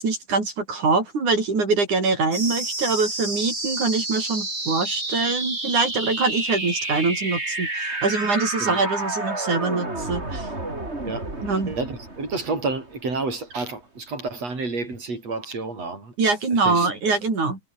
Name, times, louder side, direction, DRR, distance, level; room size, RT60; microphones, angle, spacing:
voice 1, 0.0-10.5 11.4-11.7 16.2-17.6, right 4 dB, 85° right, 8.2 m, -24 dB
sound 1, 2.3-13.3, right 2 dB, 20° right, 5.4 m, -30 dB
voice 2, 11.7-16.1 16.6-16.9, right 3 dB, 60° right, 9.0 m, -30 dB
omnidirectional pair, 3.4 m